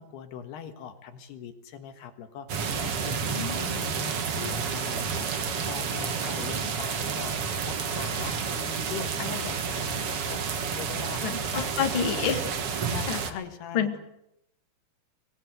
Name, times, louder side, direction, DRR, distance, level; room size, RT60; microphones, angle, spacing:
voice 1, 0.0-7.4 7.6-11.2 11.5-11.8 12.8-14.0, left 8 dB, 65° left, 7 dB, 3.4 m, -41 dB
sound 1, 2.5-13.3, right 6 dB, 90° right, 1.2 m, -30 dB
voice 2, 3.3-3.7 11.2-12.4 13.1-13.2 13.7-13.9, left 7 dB, 45° left, 5 dB, 1.6 m, -28 dB
25.0 x 20.0 x 8.1 m, 0.83 s
omnidirectional pair, 5.3 m